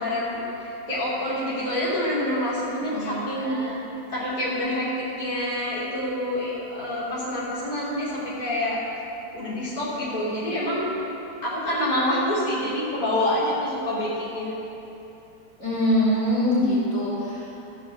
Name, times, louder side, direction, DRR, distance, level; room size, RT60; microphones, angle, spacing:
voice 1, 0.0-3.7 4.1-4.9 5.2-8.8 9.3-10.9 11.4-14.5, left 1 dB, 25° left, -10 dB, 3.2 m, -27 dB
voice 2, 2.8-3.7 15.6-17.5, equal, 50° left, -10 dB, 3.9 m, -24 dB
13.5 x 6.6 x 7.8 m, 2.9 s
omnidirectional pair, 1.8 m